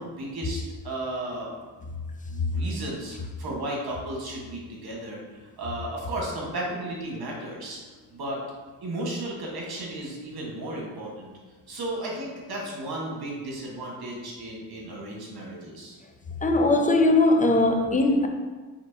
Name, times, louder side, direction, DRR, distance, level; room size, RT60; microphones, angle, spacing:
voice 1, 0.0-1.5 2.3-5.2 5.6-7.8 8.1-8.4 8.8-11.3 11.7-16.0, right 1 dB, 55° right, 1.4 m, -34 dB
voice 2, 16.4-18.3, left 2 dB, 20° left, 0.5 m, -20 dB
4.4 x 3.6 x 2.7 m
supercardioid pair, 60°, 43 cm